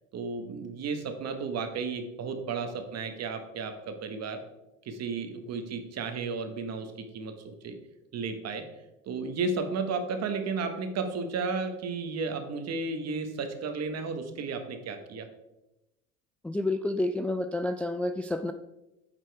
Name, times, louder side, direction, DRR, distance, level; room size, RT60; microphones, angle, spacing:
voice 1, 0.1-4.4 4.8-7.7 8.1-8.6 9.1-15.3, right 4 dB, 50° right, 7 dB, 1.4 m, -33 dB
voice 2, 16.4-18.5, left 2 dB, 5° left, 8 dB, 0.3 m, -29 dB
9.1 x 5.9 x 3.5 m, 0.95 s
hypercardioid pair, 80°, 34 cm